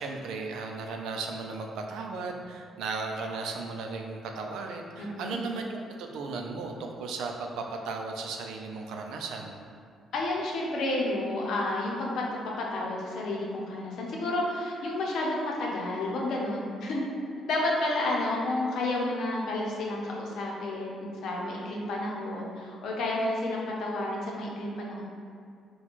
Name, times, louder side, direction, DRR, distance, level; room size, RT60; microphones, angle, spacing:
voice 1, 0.0-9.6, right 4 dB, 85° right, 2 dB, 0.4 m, -36 dB
voice 2, 5.0-5.4 10.1-17.0 17.5-25.0, left 2 dB, 75° left, -2 dB, 0.7 m, -31 dB
4.5 x 2.3 x 4.1 m, 2.3 s
cardioid pair, 90°, 0 cm